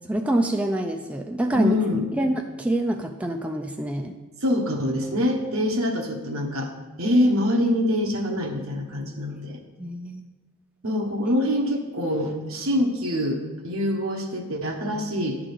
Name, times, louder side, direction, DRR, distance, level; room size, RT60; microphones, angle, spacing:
voice 1, 0.1-1.8 2.1-4.1 9.8-10.3 12.0-12.2, right 1 dB, 5° right, 3 dB, 0.3 m, -26 dB
voice 2, 1.5-2.1 4.4-6.7 7.0-9.6 10.8-15.4, left 1 dB, 65° right, 2 dB, 1.1 m, -25 dB
10.0 x 3.8 x 6.6 m, 1.3 s
head